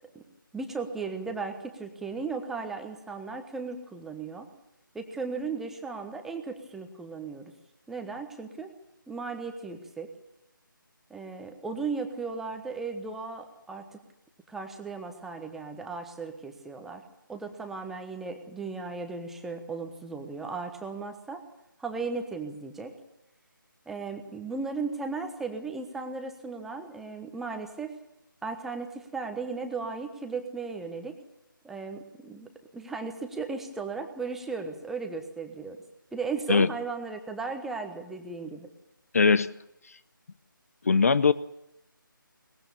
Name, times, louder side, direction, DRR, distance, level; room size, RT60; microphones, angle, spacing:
voice 1, 0.5-4.5 4.9-7.5 7.9-8.7 9.1-10.1 11.1-14.0 14.5-17.0 17.3-21.4 21.8-22.9 23.9-27.9 28.4-31.2 31.6-35.8 36.1-38.7, right 4 dB, 5° right, 5 dB, 1.2 m, -36 dB
voice 2, 39.1-39.5 40.8-41.3, left 5 dB, 45° left, 17 dB, 0.7 m, -20 dB
22.5 x 20.5 x 7.1 m, 0.85 s
figure-of-eight pair, 155°, 11 cm